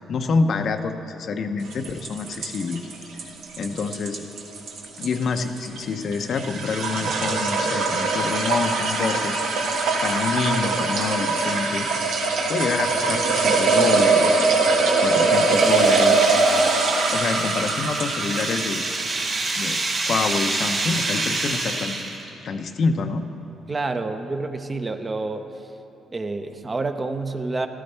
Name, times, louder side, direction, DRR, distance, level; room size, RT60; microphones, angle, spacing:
voice 1, 0.1-2.9 3.6-4.2 5.0-9.3 10.0-11.9 12.5-14.4 15.0-16.2 17.1-18.9 19.5-22.0 22.4-23.3, left 4 dB, 60° left, 7 dB, 0.7 m, -27 dB
sound 1, 1.7-18.9, right 3 dB, 85° right, 1.3 m, -22 dB
sound 2, 14.5-22.3, right 3 dB, 45° right, 2.1 m, -28 dB
voice 2, 23.7-25.5 26.1-27.7, right 3 dB, 30° right, 7 dB, 0.7 m, -28 dB
14.0 x 13.0 x 3.4 m, 3.0 s
cardioid pair, 90°, 0 cm